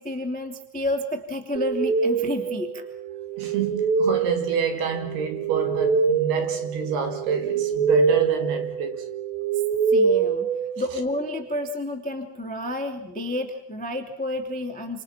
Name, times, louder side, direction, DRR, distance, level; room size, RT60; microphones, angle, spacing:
voice 1, 0.0-2.9 9.9-15.0, left 1 dB, 5° left, 0.9 m, -30 dB
sound 1, 1.6-11.2, right 5 dB, 85° right, 3.7 m, -25 dB
voice 2, 3.4-9.0, right 6 dB, 65° right, 4.4 m, -28 dB
28.5 x 27.0 x 5.9 m
omnidirectional pair, 5.0 m